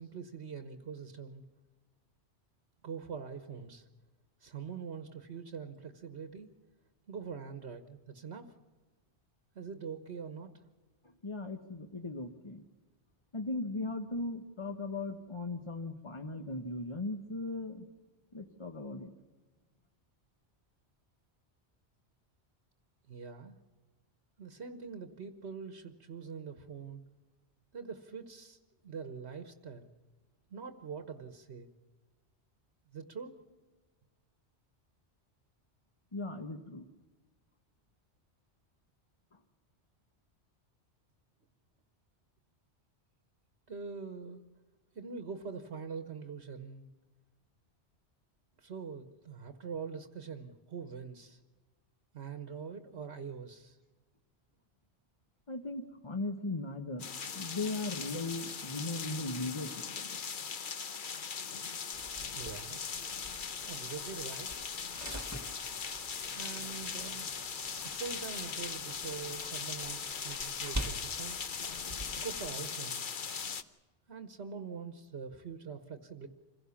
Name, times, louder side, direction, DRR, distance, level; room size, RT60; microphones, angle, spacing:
voice 1, 0.0-1.4 2.8-3.9 4.4-6.5 7.1-8.6 9.5-10.6 23.1-23.6 24.4-27.0 27.7-28.6 28.8-29.9 30.5-31.7 32.9-33.4 43.7-44.4 44.9-46.9 48.6-51.4 52.1-53.8 62.2-62.8 63.7-64.6 65.7-67.3 67.8-71.4 72.1-73.1 74.1-76.3, right 6 dB, 70° right, 8 dB, 1.4 m, -44 dB
voice 2, 11.2-12.6 13.3-17.9 18.3-19.1 36.1-36.8 39.3-39.4 55.5-60.2, left 2 dB, 25° left, 4 dB, 1.1 m, -38 dB
sound 1, 57.0-73.6, left 6 dB, 50° left, 1.0 m, -39 dB
sound 2, 61.9-72.5, right 1 dB, 15° right, 1.8 m, -46 dB
26.0 x 16.5 x 7.1 m, 1.3 s
omnidirectional pair, 1.2 m